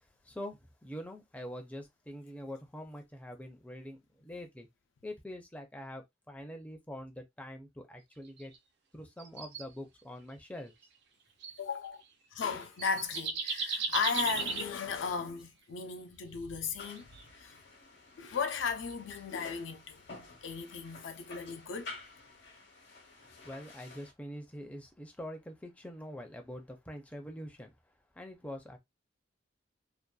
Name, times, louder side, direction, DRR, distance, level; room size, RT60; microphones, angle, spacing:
voice 1, 0.2-4.7 5.0-8.5 8.9-10.7 23.2-27.7 28.2-28.8, equal, 10° left, 0.4 m, -44 dB
sound 1, 8.4-8.6 9.2-9.6 10.6-10.8 11.4-11.6 12.4-12.5 12.8-14.7 16.9-17.2 18.7-18.9, right 4 dB, 60° right, 0.5 m, -35 dB
voice 2, 11.6-12.0 12.3-17.6 18.2-20.0 20.4-21.9, left 5 dB, 80° left, 0.5 m, -36 dB
sound 2, 16.8-24.1, left 3 dB, 65° left, 0.9 m, -51 dB
2.6 x 2.2 x 2.3 m
head